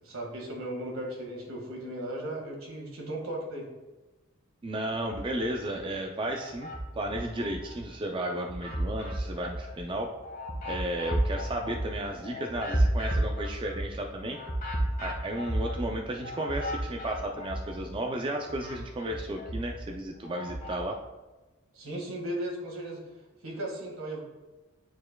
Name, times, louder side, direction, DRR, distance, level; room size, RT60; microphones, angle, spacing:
voice 1, 0.0-3.7 21.7-23.0 23.4-24.2, right 1 dB, 80° right, 0 dB, 1.7 m, -36 dB
voice 2, 4.6-6.7 7.0-10.1 10.6-14.4 15.0-21.0, right 1 dB, 25° right, 2 dB, 0.4 m, -33 dB
sound 1, 5.1-5.8 6.2-7.8 8.2-17.9 18.2-20.8, right 1 dB, 40° left, 1.4 m, -33 dB
9.4 x 4.4 x 2.3 m, 1.1 s
head